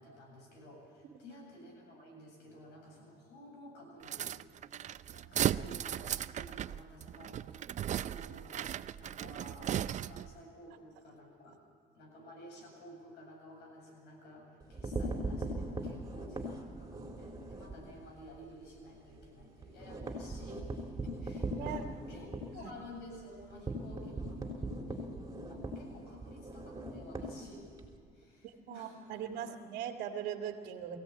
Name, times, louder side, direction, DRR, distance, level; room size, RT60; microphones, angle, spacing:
voice 1, 0.0-4.3 4.6-8.7 9.0-11.6 11.9-22.3 22.5-27.7 28.1-29.5, left 1 dB, 85° left, 0 dB, 7.7 m, -53 dB
sound 1, 4.0-10.4, right 10 dB, 45° right, 0.5 m, -36 dB
sound 2, 14.6-17.8 18.2-18.4 18.7-18.8 19.1-27.9, right 1 dB, 20° right, 3.7 m, -39 dB
voice 2, 28.4-31.0, right 9 dB, 80° right, 3 dB, 1.8 m, -40 dB
23.0 x 16.5 x 8.7 m, 2.3 s
cardioid pair, 110°, 17 cm